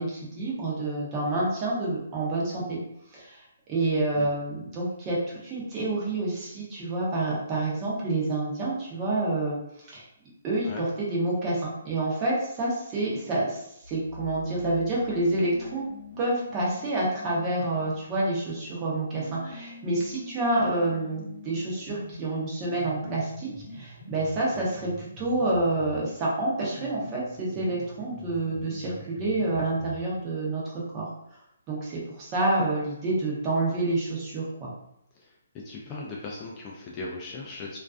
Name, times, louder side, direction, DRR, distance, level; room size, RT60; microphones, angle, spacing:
voice 1, 0.0-2.8 3.1-9.6 9.9-10.1 10.4-15.8 16.2-31.1 31.7-34.7, right 2 dB, 20° right, -5 dB, 0.7 m, -28 dB
sound 1, 13.8-16.7, left 1 dB, 45° right, 1.1 m, -47 dB
sound 2, 15.1-18.4 19.1-26.1 26.6-30.1, left 1 dB, 55° left, 0.7 m, -45 dB
voice 2, 35.6-37.8, left 3 dB, 20° left, -3 dB, 0.3 m, -38 dB
2.4 x 2.2 x 2.4 m, 0.79 s
hypercardioid pair, 155°, 0 cm